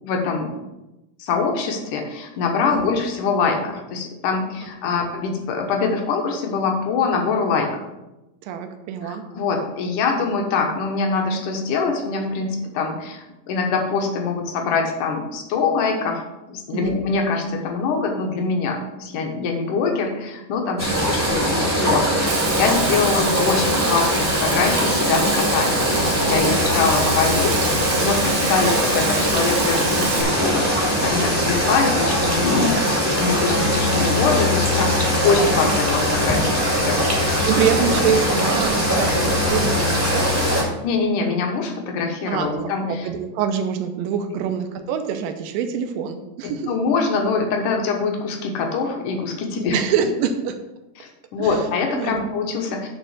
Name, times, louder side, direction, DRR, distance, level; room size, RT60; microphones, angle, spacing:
voice 1, 0.0-0.6 1.2-7.7 9.0-16.2 16.5-35.0 35.2-37.0 40.8-43.1 46.4-49.8 51.0-52.9, left 4 dB, 70° left, 2 dB, 2.1 m, -24 dB
voice 2, 8.4-9.2 16.7-17.0 20.8-20.9 26.3-26.6 37.5-40.8 42.3-46.7 49.7-50.6 51.4-52.3, right 7 dB, 80° right, 6 dB, 2.0 m, -25 dB
sound 1, 20.8-40.6, equal, 15° right, 0.5 m, -21 dB
Frying (food), 22.3-30.2, right 6 dB, 65° right, 2.0 m, -29 dB
9.3 x 3.7 x 6.5 m, 0.98 s
omnidirectional pair, 4.7 m